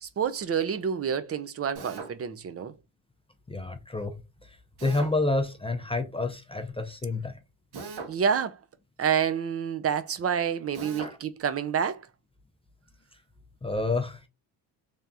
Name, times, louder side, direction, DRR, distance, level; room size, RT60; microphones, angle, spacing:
voice 1, 0.0-2.7 8.1-8.6 9.0-12.0, right 7 dB, 30° right, 0.6 m, -28 dB
Drill, 1.7-2.1 4.8-5.1 7.7-8.2 10.7-11.1, right 4 dB, 55° right, 1.3 m, -39 dB
voice 2, 3.5-4.2 4.8-7.3 11.0-11.2 13.6-14.3, left 2 dB, 10° left, 0.5 m, -29 dB
3.5 x 2.3 x 4.1 m
supercardioid pair, 85°, 47 cm